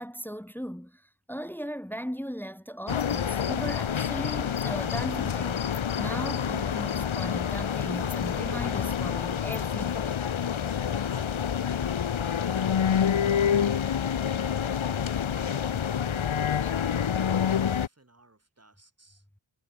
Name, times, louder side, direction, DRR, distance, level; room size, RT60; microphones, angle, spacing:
voice 1, 0.0-10.2, equal, 5° left, 1.1 m, -37 dB
sound 1, 2.9-17.9, left 8 dB, 85° left, 1.2 m, -27 dB
voice 2, 11.1-14.1 14.7-19.2, right 2 dB, 30° right, 7.3 m, -55 dB
wide cardioid pair, 75°, 46 cm